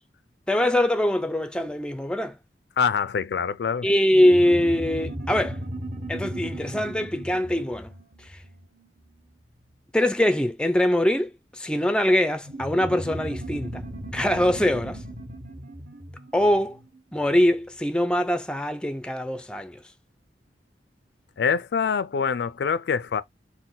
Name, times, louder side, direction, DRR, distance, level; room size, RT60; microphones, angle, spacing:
voice 1, 0.5-2.4 3.8-5.6 6.1-7.9 8.2-8.4 9.9-13.8 14.1-15.0 16.3-16.8 17.1-19.8, left 1 dB, 5° left, 0.4 m, -23 dB
voice 2, 2.8-3.9 21.4-23.2, left 6 dB, 70° left, 0.4 m, -25 dB
sound 1, 4.1-9.1 12.4-17.4, right 1 dB, 40° right, 1.0 m, -36 dB
4.1 x 2.1 x 3.9 m
head